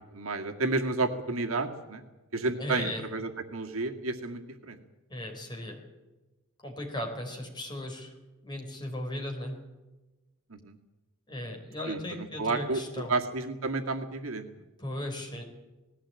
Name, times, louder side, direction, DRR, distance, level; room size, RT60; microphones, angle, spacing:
voice 1, 0.1-2.0 2.3-4.8 10.5-10.8 11.9-12.8 13.1-14.5, right 3 dB, 75° right, 4 dB, 2.1 m, -31 dB
voice 2, 2.5-3.1 5.1-5.8 6.6-8.1 8.4-9.6 11.3-13.1 14.8-15.4, left 1 dB, 20° left, 2 dB, 4.6 m, -36 dB
19.0 x 16.5 x 8.9 m, 1.1 s
head